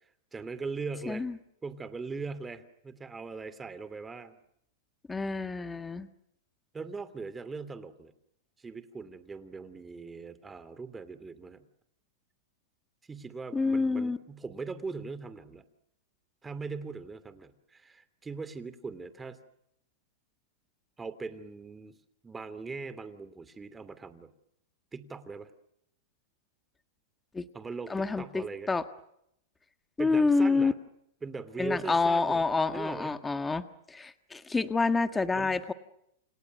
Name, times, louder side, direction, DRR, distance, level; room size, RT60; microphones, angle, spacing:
voice 1, 0.3-1.3 1.6-4.4 6.7-8.1 8.6-11.7 13.1-15.6 16.4-19.4 21.0-22.0 22.2-24.3 24.9-25.5 27.5-28.7 30.0-30.7 31.2-32.4 32.7-33.2 35.3-35.6, right 4 dB, 10° right, 13 dB, 2.8 m, -40 dB
voice 2, 5.1-6.1 13.5-14.2 27.3-27.5 27.9-28.8 30.0-30.7 31.6-35.7, left 3 dB, 10° left, 10 dB, 1.6 m, -28 dB
29.5 x 29.0 x 6.5 m, 0.77 s
hypercardioid pair, 135°, 0 cm